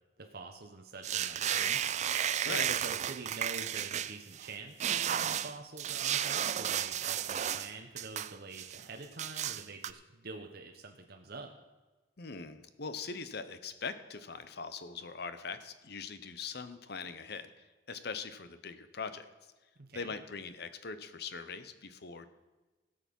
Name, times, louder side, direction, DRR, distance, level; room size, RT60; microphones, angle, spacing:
voice 1, 0.2-1.8 2.4-11.5 19.8-20.1, right 3 dB, 60° right, 3 dB, 1.0 m, -46 dB
sound 1, 1.0-4.5 4.8-7.7 8.0-8.8 9.2-9.9, right 10 dB, 40° right, 0.4 m, -33 dB
voice 2, 12.2-19.3 19.9-22.3, left 5 dB, 60° left, 12 dB, 0.9 m, -42 dB
17.5 x 6.9 x 5.4 m, 1.2 s
head